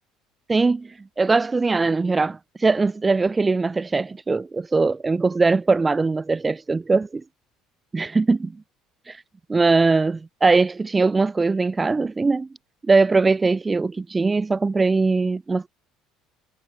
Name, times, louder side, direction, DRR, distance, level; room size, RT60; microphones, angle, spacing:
voice 1, 0.5-7.2 7.9-8.5 9.1-9.2 9.5-12.5 12.9-15.7, right 3 dB, 25° right, 0.6 m, -21 dB
hypercardioid pair, 70°, 0 cm